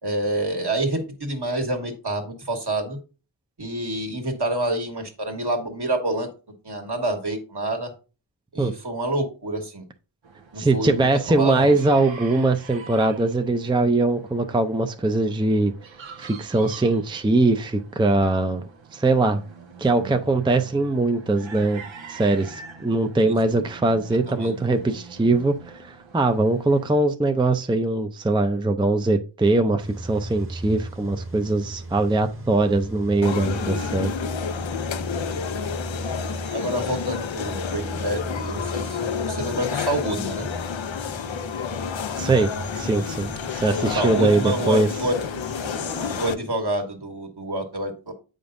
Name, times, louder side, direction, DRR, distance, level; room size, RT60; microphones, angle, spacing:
voice 1, 0.0-3.0 3.6-6.3 6.6-7.9 8.5-9.9 10.5-12.0 23.2-23.3 24.3-24.5 36.5-40.5 43.9-45.2 46.2-48.1, right 1 dB, 60° right, 1.5 m, -27 dB
sound 1, 10.2-26.9, right 5 dB, 80° right, 0.8 m, -44 dB
voice 2, 10.6-15.7 16.2-18.6 18.9-19.4 19.8-21.8 22.1-34.1 42.2-42.5 42.8-43.3 43.5-44.9, right 2 dB, 10° right, 0.5 m, -21 dB
Car / Engine starting / Idling, 29.8-46.3, right 1 dB, 25° right, 1.0 m, -36 dB
sound 2, 33.2-46.3, left 7 dB, 80° left, 0.6 m, -30 dB
7.8 x 5.2 x 2.6 m
wide cardioid pair, 40°, 46 cm